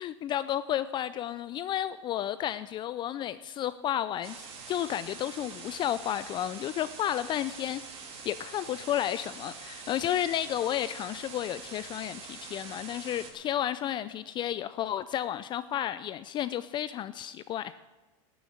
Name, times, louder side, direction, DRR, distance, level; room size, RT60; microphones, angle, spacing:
voice 1, 0.0-4.4 4.7-17.8, left 11 dB, 30° left, 14 dB, 0.4 m, -32 dB
sound 1, 4.2-13.3, right 5 dB, 35° right, 2.6 m, -45 dB
12.0 x 7.0 x 10.0 m, 1.1 s
supercardioid pair, 130°, 16 cm